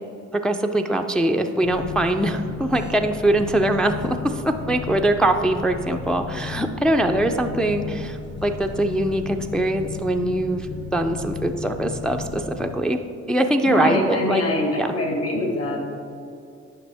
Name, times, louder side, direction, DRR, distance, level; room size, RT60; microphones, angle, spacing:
voice 1, 0.3-13.0 13.3-14.4 14.8-14.9, right 1 dB, 5° left, 4 dB, 0.3 m, -22 dB
sound 1, 1.6-12.8, left 4 dB, 35° left, 0.8 m, -34 dB
voice 2, 13.6-15.9, left 1 dB, 55° left, 1 dB, 1.8 m, -24 dB
8.8 x 5.8 x 3.4 m, 2.5 s
cardioid pair, 90°, 30 cm